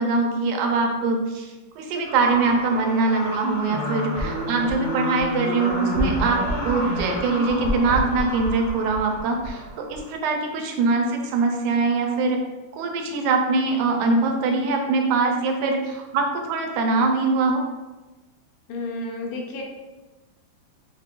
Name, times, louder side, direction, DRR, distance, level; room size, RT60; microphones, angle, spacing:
voice 1, 0.0-12.4 12.7-17.6, right 3 dB, 80° right, 3 dB, 2.1 m, -23 dB
sound 1, 2.0-10.1, equal, 55° left, 1.3 m, -31 dB
sound 2, 3.7-8.8, right 1 dB, 65° right, 1.7 m, -31 dB
voice 2, 18.7-19.6, left 2 dB, 85° left, 0 dB, 2.1 m, -31 dB
6.0 x 3.6 x 2.4 m, 1.2 s
omnidirectional pair, 3.5 m